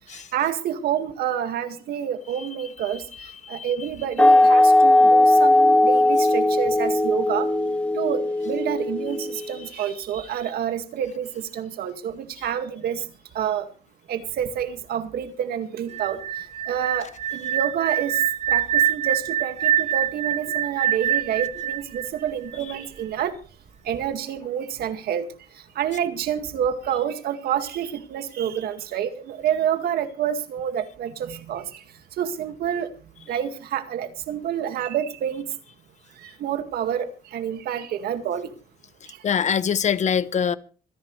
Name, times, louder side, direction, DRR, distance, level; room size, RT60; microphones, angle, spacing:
voice 1, 0.3-3.0 3.5-7.5 7.9-13.0 13.3-13.7 14.1-16.2 16.7-18.2 18.5-23.3 23.9-25.3 25.8-31.8 32.2-32.9 33.3-35.4 36.2-38.5, right 9 dB, 75° right, 2.0 m, -28 dB
voice 2, 3.2-3.7 39.2-40.6, left 7 dB, 45° left, 1.0 m, -24 dB
sound 1, 4.2-9.6, left 1 dB, 10° left, 2.0 m, -18 dB
sound 2, 15.9-22.8, right 10 dB, 45° right, 0.6 m, -25 dB
26.5 x 10.5 x 3.3 m
cardioid pair, 95°, 16 cm